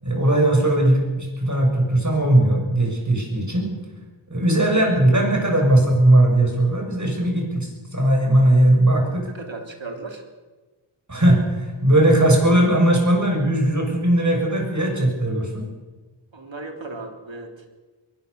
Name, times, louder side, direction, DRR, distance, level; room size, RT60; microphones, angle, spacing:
voice 1, 0.0-3.7 4.3-9.3 11.1-15.6, right 1 dB, 35° right, 2 dB, 7.2 m, -18 dB
voice 2, 9.3-10.3 16.3-17.7, right 3 dB, 65° right, 3 dB, 3.4 m, -36 dB
22.5 x 18.5 x 6.9 m, 1.3 s
wide cardioid pair, 55°, 49 cm